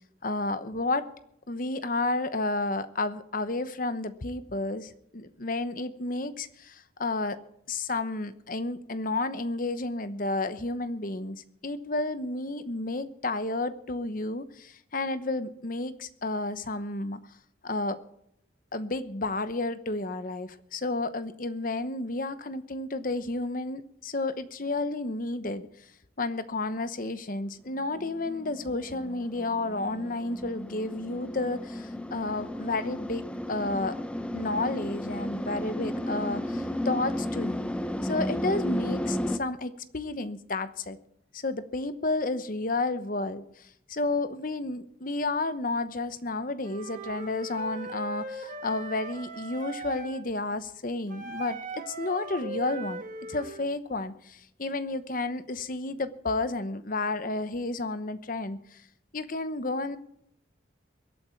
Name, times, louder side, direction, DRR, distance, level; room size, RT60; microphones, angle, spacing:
voice 1, 0.2-1.1 1.5-7.4 7.7-17.2 17.6-18.0 18.7-25.7 26.2-33.2 33.5-34.0 34.3-37.7 38.0-41.0 41.3-53.0 53.3-58.8 59.1-60.0, left 2 dB, 45° left, 12 dB, 1.0 m, -31 dB
sound 1, 27.7-39.4, left 1 dB, 5° left, 0.7 m, -34 dB
Wind instrument woodwind instrument, 46.6-50.2 51.1-53.7, right 3 dB, 40° right, 1.9 m, -39 dB
23.5 x 8.8 x 4.5 m, 0.75 s
head